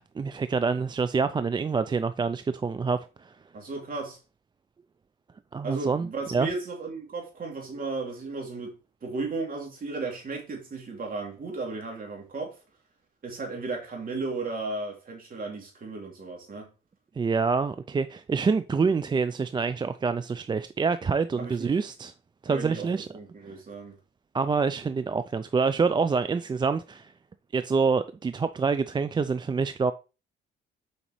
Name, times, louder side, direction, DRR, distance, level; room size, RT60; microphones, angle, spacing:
voice 1, 0.0-3.3 5.5-6.5 17.2-22.1 22.4-23.1 24.3-27.1 27.5-29.9, right 5 dB, 25° right, 0.4 m, -26 dB
voice 2, 3.5-4.2 5.6-8.7 9.0-12.5 13.2-16.7 21.4-21.7 22.4-22.9 23.1-23.9, right 3 dB, 45° right, 2.9 m, -35 dB
7.1 x 5.1 x 3.1 m
cardioid pair, 90°, 20 cm